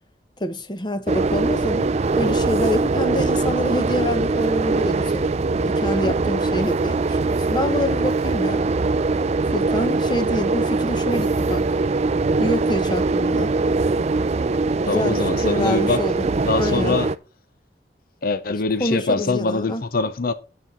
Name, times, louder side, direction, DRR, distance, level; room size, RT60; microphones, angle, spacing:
voice 1, 0.4-8.7 9.5-11.7 12.4-13.5 14.8-17.0 18.8-19.8, left 1 dB, 25° left, 0.9 m, -26 dB
sound 1, 1.1-17.2, right 3 dB, 40° right, 0.4 m, -22 dB
voice 2, 14.9-16.0 16.5-17.1 18.2-20.3, left 3 dB, 55° left, 0.7 m, -23 dB
9.6 x 7.6 x 4.1 m
head